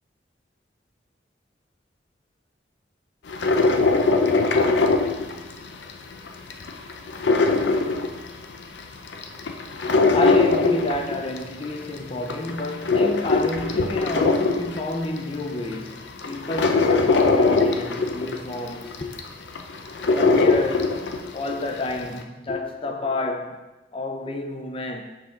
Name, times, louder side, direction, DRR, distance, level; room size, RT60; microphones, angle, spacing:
sound 1, 3.3-5.9 6.3-8.6 9.0-11.6 12.1-15.2 15.7-15.8 16.2-21.4 21.7-21.8, left 3 dB, 75° left, 0.5 m, -21 dB
voice 1, 10.1-19.2 20.1-23.6 23.9-25.0, left 2 dB, 30° left, 0.6 m, -29 dB
5.8 x 4.8 x 3.7 m
head